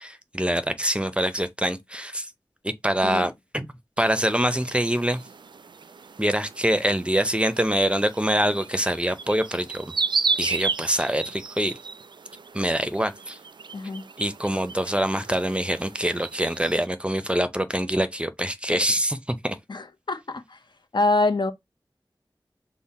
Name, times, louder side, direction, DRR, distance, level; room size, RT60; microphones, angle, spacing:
voice 1, 0.0-2.3 2.6-5.2 6.2-9.9 10.4-11.7 12.5-13.4 14.2-19.6, equal, 15° right, 0.6 m, -25 dB
sound 1, 4.0-16.9, right 4 dB, 65° right, 0.4 m, -34 dB
voice 2, 13.7-14.0 19.7-20.6 20.9-21.5, left 2 dB, 65° left, 0.7 m, -25 dB
5.5 x 2.1 x 4.1 m
wide cardioid pair, 50°, 8 cm